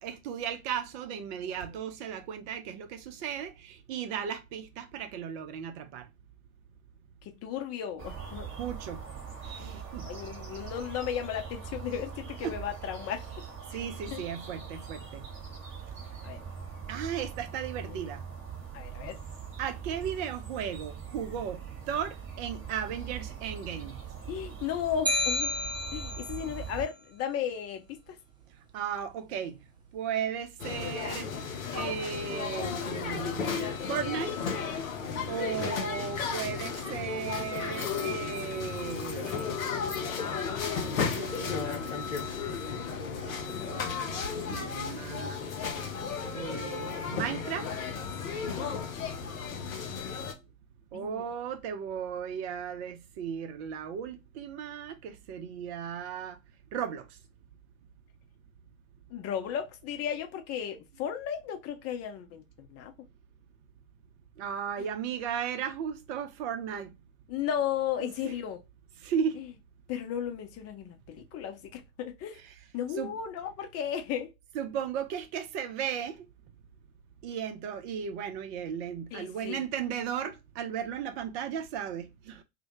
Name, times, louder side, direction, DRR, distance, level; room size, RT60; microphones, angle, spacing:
voice 1, 0.0-6.1 8.6-9.0 9.5-10.1 12.4-12.6 13.7-15.3 16.9-18.2 19.6-21.6 21.9-24.0 28.7-29.6 29.9-31.3 31.7-34.4 35.3-39.6 40.8-42.6 43.2-44.2 44.5-45.5 46.3-47.7 50.9-56.4 56.7-57.2 64.4-66.9 68.0-68.3 69.0-69.4 72.3-72.6 72.9-73.2 74.5-76.3 77.2-82.4, right 8 dB, 55° right, 0.6 m, -36 dB
voice 2, 7.3-8.5 9.6-13.3 14.1-14.2 16.2-16.4 17.9-18.0 18.7-19.2 24.3-25.5 25.9-28.2 48.6-48.7 49.7-50.2 50.9-51.3 59.1-62.9 67.3-68.6 69.9-72.4 72.7-74.3 79.1-79.6, left 9 dB, 40° left, 0.6 m, -35 dB
sound 1, 8.0-26.9, right 7 dB, 30° right, 1.0 m, -42 dB
sound 2, 25.1-26.4, left 1 dB, 10° right, 0.6 m, -30 dB
sound 3, 30.6-50.3, left 6 dB, 80° left, 0.6 m, -34 dB
2.1 x 2.1 x 2.9 m
figure-of-eight pair, 70°, 40 cm